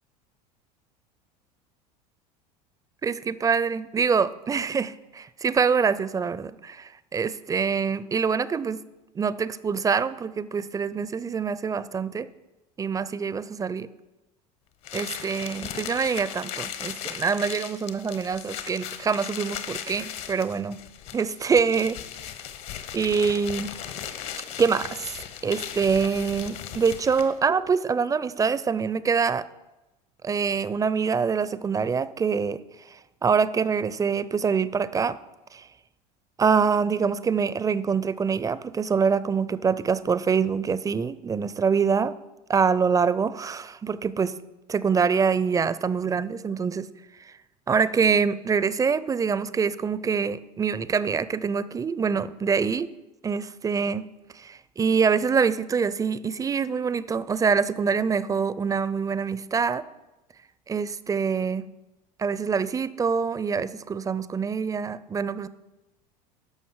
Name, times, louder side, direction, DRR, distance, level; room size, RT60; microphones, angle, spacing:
voice 1, 3.0-8.8 9.2-12.3 12.8-13.9 14.9-20.8 21.1-22.0 22.9-23.7 24.6-29.5 30.2-32.6 32.9-35.2 35.5-35.7 36.4-42.1 42.5-44.3 44.7-46.9 47.2-47.3 47.7-52.9 53.2-54.1 54.3-59.9 60.7-61.7 62.2-65.5, right 6 dB, 15° right, 16 dB, 0.4 m, -25 dB
sound 1, 14.8-27.4, left 10 dB, 60° left, 1.0 m, -37 dB
13.0 x 5.4 x 4.7 m, 1.0 s
hypercardioid pair, 80°, 21 cm